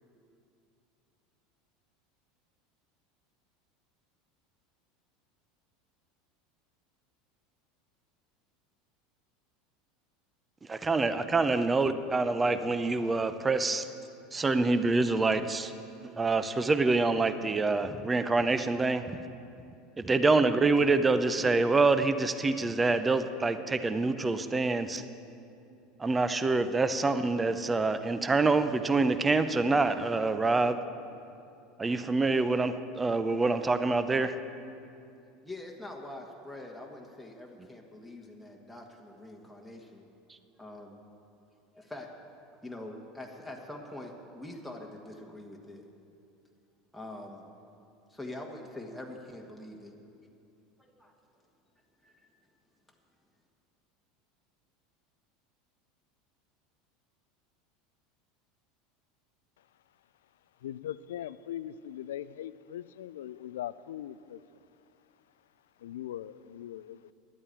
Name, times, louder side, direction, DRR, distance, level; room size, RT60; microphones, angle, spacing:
voice 1, 10.7-13.9 14.3-15.7 16.0-19.2 20.0-25.0 26.0-30.8 31.8-34.3, right 3 dB, 20° right, 11 dB, 0.7 m, -26 dB
voice 2, 35.4-40.1 40.6-41.0 41.7-42.1 42.6-45.8 46.9-47.5 48.1-49.9 51.0-51.1 52.0-52.1, left 1 dB, ahead, -1 dB, 1.5 m, -44 dB
voice 3, 60.6-64.4 65.8-67.1, left 11 dB, 75° left, 17 dB, 0.3 m, -40 dB
11.0 x 8.7 x 8.5 m, 2.6 s
hypercardioid pair, 80°, 0 cm